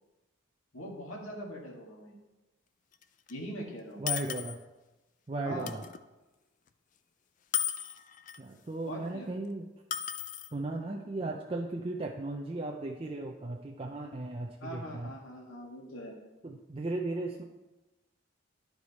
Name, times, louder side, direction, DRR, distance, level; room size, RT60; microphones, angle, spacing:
voice 1, 0.7-2.1 3.3-4.0 5.4-5.7 8.9-9.3 14.6-16.2, equal, 75° left, -1 dB, 1.8 m, -42 dB
sound 1, 2.9-3.0 3.3-3.4 4.1-4.5 5.6-6.0 7.5-8.4 9.9-10.5, left 9 dB, 40° left, 0.3 m, -34 dB
voice 2, 4.0-4.6 5.3-5.8 8.4-9.6 10.5-15.1 16.4-17.4, right 2 dB, 25° right, 1 dB, 0.4 m, -36 dB
11.5 x 4.7 x 4.1 m, 1.1 s
head